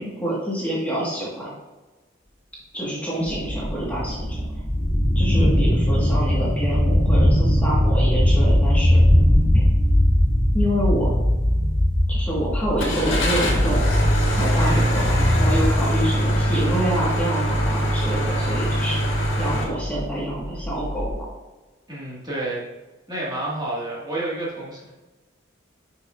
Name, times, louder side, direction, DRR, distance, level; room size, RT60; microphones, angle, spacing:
voice 1, 0.0-1.5 2.7-4.6 5.1-9.0 9.5-9.7 10.5-11.1 12.1-13.9 14.3-19.0 19.4-21.2, right 1 dB, 10° left, -7 dB, 1.7 m, -27 dB
sound 1, 3.3-21.1, left 1 dB, 35° left, 2.5 m, -21 dB
Car / Engine starting, 12.8-19.6, equal, 75° left, 1.9 m, -23 dB
voice 2, 14.6-15.0 21.9-22.6 23.1-24.9, right 1 dB, 20° right, -6 dB, 2.0 m, -30 dB
10.5 x 5.7 x 2.6 m, 1.2 s
head